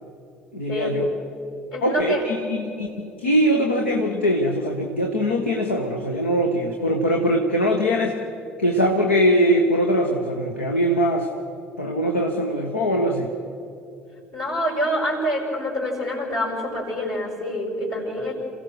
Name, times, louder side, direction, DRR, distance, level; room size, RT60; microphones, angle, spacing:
voice 1, 0.5-1.1 1.8-8.2 8.6-11.3 11.8-13.3, equal, 85° left, 2 dB, 1.2 m, -22 dB
voice 2, 1.7-2.2 14.3-18.3, equal, 55° left, -8 dB, 5.0 m, -26 dB
27.5 x 17.0 x 6.2 m, 2.7 s
figure-of-eight pair, 55°, 6 cm